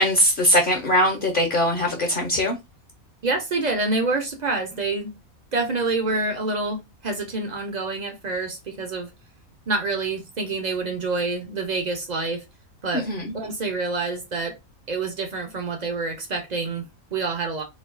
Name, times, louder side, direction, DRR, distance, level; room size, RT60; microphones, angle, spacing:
voice 1, 0.0-2.6 12.9-13.2, equal, 50° left, 0.7 m, -21 dB
voice 2, 3.2-5.2 5.5-9.1 9.7-12.4 12.8-13.1 13.3-14.6 14.9-17.6, right 3 dB, 55° right, 0.5 m, -27 dB
4.2 x 2.3 x 2.4 m
omnidirectional pair, 1.4 m